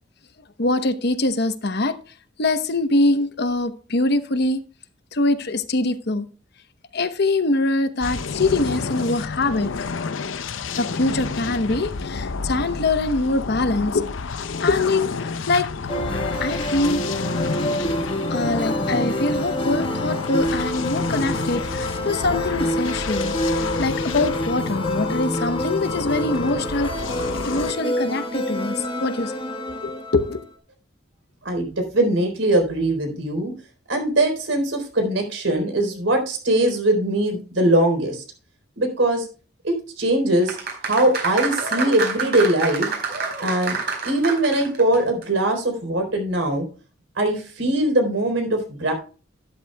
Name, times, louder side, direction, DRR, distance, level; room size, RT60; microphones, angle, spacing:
voice 1, 0.6-2.0 2.4-4.6 5.1-6.3 6.9-9.7 10.8-14.1 14.4-15.7 16.4-17.0 17.7-17.8 18.3-26.9 27.4-29.3 29.8-30.4, left 2 dB, 60° left, 1.0 m, -23 dB
sound 1, 8.0-27.7, left 4 dB, 80° left, 0.6 m, -30 dB
sound 2, 15.9-30.4, equal, 25° left, 1.4 m, -27 dB
voice 2, 31.4-33.5 33.9-38.2 38.8-39.3 39.6-40.6 40.8-42.9 43.4-43.8 44.0-46.7 47.2-48.9, right 1 dB, 80° right, 4.0 m, -21 dB
sound 3, 40.4-44.9 45.2-45.3, right 5 dB, 55° right, 4.8 m, -27 dB
12.5 x 11.5 x 2.3 m
head